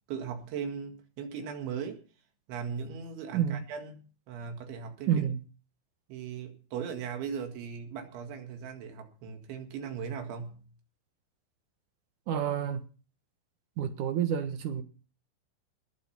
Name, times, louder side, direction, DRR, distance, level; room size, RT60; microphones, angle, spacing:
voice 1, 0.1-2.0 2.5-5.3 6.1-10.7, right 6 dB, 85° right, 4.4 m, -38 dB
voice 2, 3.3-3.6 5.1-5.4 12.3-12.9 13.8-14.8, right 9 dB, 65° right, 2.1 m, -29 dB
20.5 x 7.7 x 5.8 m
omnidirectional pair, 5.2 m